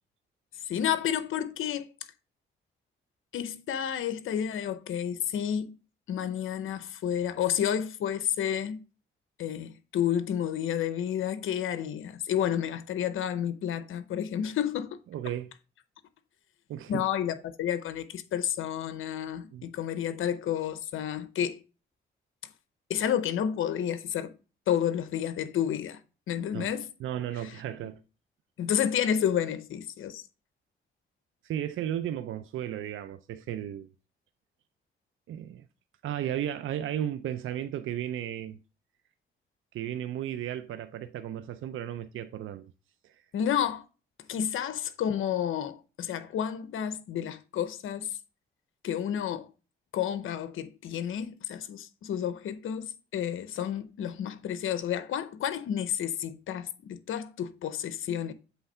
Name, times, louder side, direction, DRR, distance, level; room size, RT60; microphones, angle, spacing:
voice 1, 0.6-1.9 3.3-5.8 6.1-8.8 9.4-15.0 16.9-21.6 22.9-24.3 24.7-26.0 26.3-26.9 27.4-27.6 28.6-30.2 43.3-43.8 44.3-48.2 48.8-49.5 49.9-58.3, left 9 dB, 80° left, 0.7 m, -30 dB
voice 2, 15.1-15.5 16.7-17.1 19.5-19.7 26.5-26.7 27.0-28.0 31.4-33.9 35.3-35.6 36.0-38.6 39.7-42.7 43.0-43.2, right 11 dB, 75° right, 0.5 m, -34 dB
7.9 x 3.4 x 5.5 m
cardioid pair, 75°, 21 cm